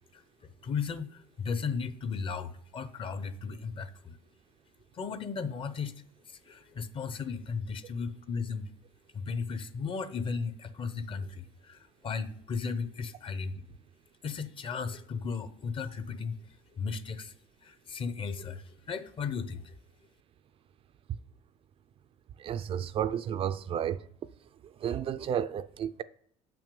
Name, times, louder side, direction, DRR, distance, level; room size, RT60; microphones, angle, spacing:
voice 1, 0.6-4.2 4.9-5.9 6.3-8.7 9.1-13.6 14.2-16.4 16.7-17.3 17.6-19.7, left 5 dB, 40° left, 0.7 m, -35 dB
voice 2, 22.4-24.1 24.6-26.0, right 9 dB, 40° right, 0.4 m, -32 dB
6.7 x 6.0 x 5.3 m
supercardioid pair, 100°, 14 cm